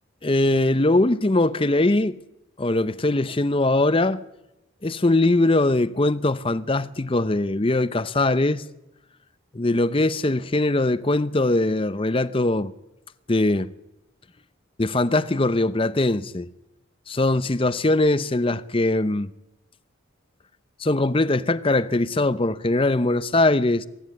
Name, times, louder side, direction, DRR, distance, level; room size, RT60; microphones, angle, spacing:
voice 1, 0.2-2.2 2.6-4.2 4.8-8.6 9.5-12.7 13.3-13.7 14.8-16.5 17.1-19.3 20.8-23.9, left 2 dB, 25° left, 0.7 m, -21 dB
23.5 x 12.0 x 9.4 m
head